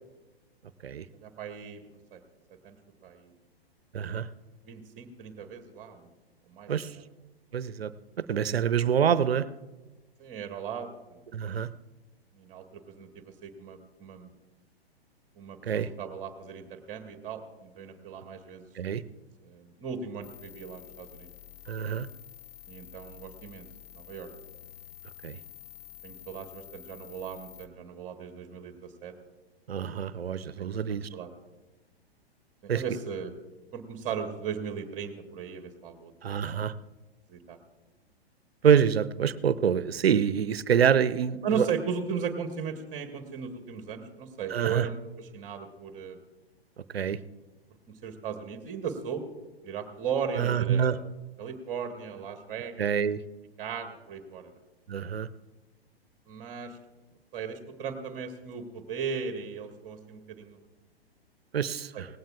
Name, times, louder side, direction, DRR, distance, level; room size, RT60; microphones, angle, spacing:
voice 1, 1.1-1.8 2.1-2.2 2.6-2.7 3.0-3.3 4.6-6.1 6.5-7.0 10.2-11.2 12.3-14.3 15.4-18.6 19.4-21.3 22.7-23.7 23.9-24.3 26.0-29.1 30.6-30.8 31.1-31.3 32.6-33.3 33.7-36.1 37.3-37.6 41.4-46.2 48.0-49.2 49.6-51.0 51.4-52.9 53.6-54.5 56.3-56.8 57.3-60.6 61.9-62.0, right 6 dB, 25° right, 7 dB, 1.1 m, -37 dB
voice 2, 3.9-4.3 6.7-6.9 7.5-7.9 8.3-9.5 11.3-11.7 15.6-15.9 18.8-19.0 21.7-22.1 25.2-25.4 29.7-31.1 32.7-32.8 36.2-36.7 38.6-41.6 44.5-44.9 46.9-47.2 50.4-51.0 52.8-53.2 54.9-55.3 61.5-62.1, right 8 dB, 75° right, 17 dB, 0.6 m, -26 dB
sound 1, 20.2-27.7, left 12 dB, 30° left, 0.9 m, -49 dB
18.5 x 16.0 x 2.4 m, 1.2 s
figure-of-eight pair, 110°, 31 cm